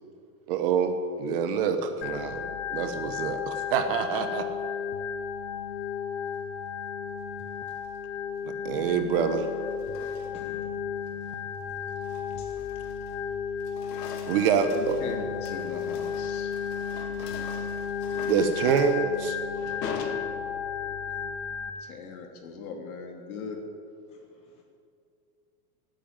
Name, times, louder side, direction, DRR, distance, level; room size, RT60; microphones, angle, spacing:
voice 1, 0.5-4.5 8.6-9.5 14.3-15.0 18.3-19.4, right 6 dB, 35° right, 7 dB, 1.0 m, -26 dB
Organ, 2.0-21.7, left 7 dB, 45° left, 0.9 m, -33 dB
sound 1, 7.5-8.0 9.1-10.6 11.1-11.4 11.8-13.3 13.5-20.9, left 6 dB, 85° left, 2.0 m, -43 dB
voice 2, 10.3-10.7 12.4-12.5 24.5-24.6, left 5 dB, 15° left, -1 dB, 1.0 m, -50 dB
voice 3, 14.5-16.5 21.8-23.6, left 5 dB, 60° left, 2 dB, 3.0 m, -40 dB
17.5 x 9.0 x 9.2 m, 2.5 s
supercardioid pair, 180°, 48 cm